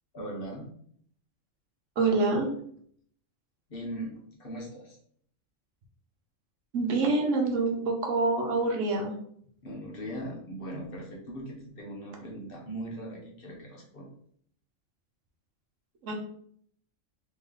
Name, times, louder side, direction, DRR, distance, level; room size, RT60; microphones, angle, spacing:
voice 1, 0.1-0.8 3.7-5.0 9.6-14.1, right 1 dB, 50° left, -2 dB, 1.1 m, -39 dB
voice 2, 2.0-2.5 6.7-9.1 16.0-16.1, right 3 dB, 75° right, 1 dB, 1.1 m, -26 dB
3.1 x 3.0 x 3.8 m, 0.63 s
omnidirectional pair, 1.3 m